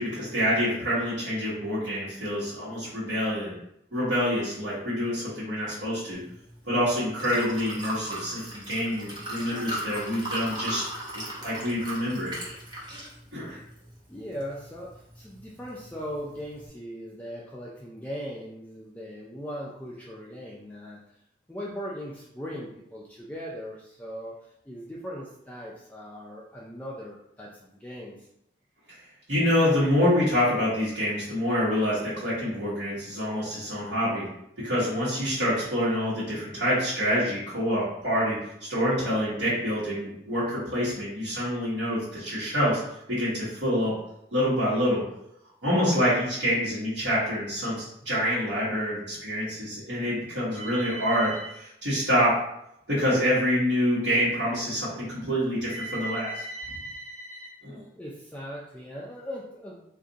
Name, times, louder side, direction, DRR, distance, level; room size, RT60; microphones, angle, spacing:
voice 1, 0.0-3.5 3.9-6.2 6.7-10.8 11.4-12.3 13.3-13.6 29.3-34.3 34.6-38.4 38.7-42.8 43.1-43.9 44.3-45.0 45.6-52.4 52.9-57.8, equal, 85° right, -11 dB, 1.3 m, -26 dB
Liquid, 6.1-16.7, right 1 dB, 25° right, 0.8 m, -39 dB
voice 2, 14.1-21.0 21.5-24.4 24.7-28.3 58.0-59.8, equal, 10° left, -5 dB, 0.4 m, -39 dB
2.5 x 2.5 x 3.8 m, 0.78 s
head